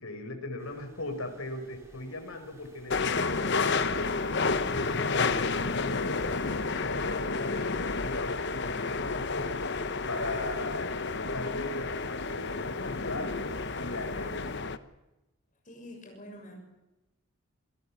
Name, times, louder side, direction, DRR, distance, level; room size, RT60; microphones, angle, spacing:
voice 1, 0.0-4.1 4.5-13.5 13.8-14.5, left 2 dB, 75° left, 6 dB, 4.9 m, -39 dB
sound 1, 0.6-14.6, equal, 10° right, 5.5 m, -54 dB
sound 2, 2.9-14.8, left 4 dB, 50° left, 1.0 m, -30 dB
voice 2, 15.6-16.6, left 1 dB, 35° left, 1 dB, 6.6 m, -46 dB
27.0 x 17.5 x 7.3 m, 1.0 s
head